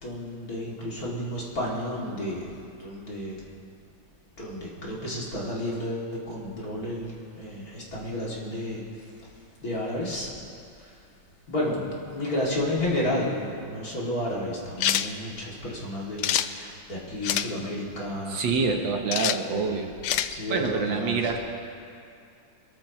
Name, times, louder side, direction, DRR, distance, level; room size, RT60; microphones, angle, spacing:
voice 1, 0.0-3.5 4.4-9.3 9.6-10.3 10.8-10.9 11.5-18.4 19.5-19.7 20.3-21.2, left 1 dB, 45° left, -6 dB, 3.2 m, -32 dB
sound 1, 14.8-15.1 16.2-16.5 17.2-17.5 19.1-19.4 20.0-20.3, left 11 dB, 75° left, 1.0 m, -25 dB
voice 2, 18.3-19.9 20.5-21.4, right 4 dB, 70° right, 3 dB, 1.8 m, -26 dB
23.5 x 14.0 x 3.1 m, 2.4 s
omnidirectional pair, 2.2 m